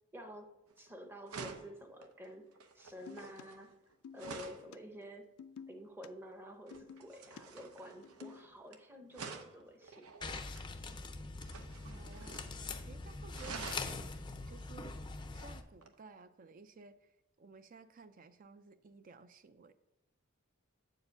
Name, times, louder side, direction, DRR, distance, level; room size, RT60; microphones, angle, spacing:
voice 1, 0.1-3.7 4.1-5.3 5.7-10.1, equal, 10° right, 5 dB, 0.7 m, -50 dB
sound 1, 0.7-0.9 1.3-4.7 6.7-8.8 9.1-10.7 11.4-12.6 12.8-12.9 13.3-14.0 15.8-15.9, right 5 dB, 85° right, 0.8 m, -49 dB
sound 2, 3.1-3.4 4.0-4.4 4.7-4.8 5.4-6.1 6.7-7.4 7.9-8.5, left 7 dB, 90° left, 0.4 m, -51 dB
sound 3, 10.2-15.6, left 3 dB, 20° left, 0.4 m, -43 dB
voice 2, 11.8-13.9 14.5-19.7, right 4 dB, 40° right, 12 dB, 0.4 m, -56 dB
7.7 x 4.8 x 6.5 m, 0.94 s
head